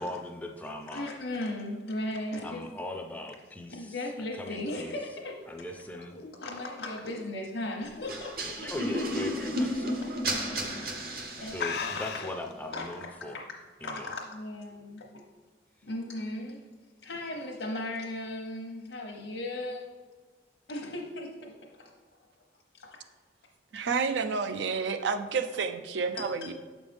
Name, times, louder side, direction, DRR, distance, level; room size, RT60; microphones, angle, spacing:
voice 1, 0.0-1.1 2.4-3.9 4.4-5.0 5.5-6.2 8.6-10.0 11.5-13.4 13.8-14.1, left 1 dB, 10° left, 4 dB, 0.3 m, -39 dB
voice 2, 0.9-2.6 3.7-5.4 6.4-8.4 9.6-10.9 11.4-12.3 12.7-13.4 13.8-15.1 15.8-16.6 17.0-19.9 20.7-21.9 22.8-23.0 26.2-26.5, left 1 dB, 90° left, -1 dB, 0.9 m, -37 dB
sound 1, 5.4-8.6 9.0-9.3 9.7-9.8 10.6-10.8 11.1-11.2 11.6-12.5, left 6 dB, 65° left, 0.5 m, -37 dB
sound 2, 8.1-12.0, equal, 55° right, 0.8 m, -32 dB
voice 3, 23.7-26.5, right 5 dB, 90° right, 9 dB, 0.5 m, -30 dB
7.1 x 5.2 x 3.4 m, 1.4 s
head